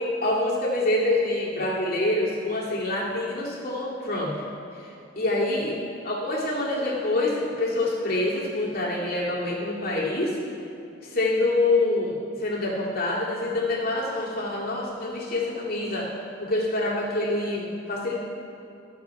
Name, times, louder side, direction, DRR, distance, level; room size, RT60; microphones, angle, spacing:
voice 1, 0.0-4.4 4.7-10.4 11.0-18.2, left 2 dB, 50° left, -6 dB, 2.3 m, -26 dB
13.5 x 7.1 x 4.7 m, 2.8 s
head